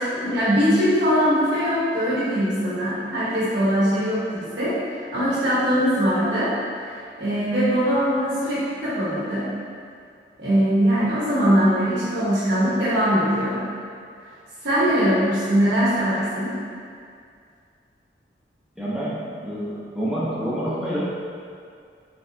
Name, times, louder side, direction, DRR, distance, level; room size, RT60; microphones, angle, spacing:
voice 1, 0.0-6.9 7.2-9.4 10.4-13.6 14.6-16.5, equal, 80° right, -10 dB, 1.2 m, -21 dB
voice 2, 18.8-21.0, equal, ahead, -9 dB, 0.9 m, -28 dB
5.4 x 3.5 x 2.8 m, 2.3 s
head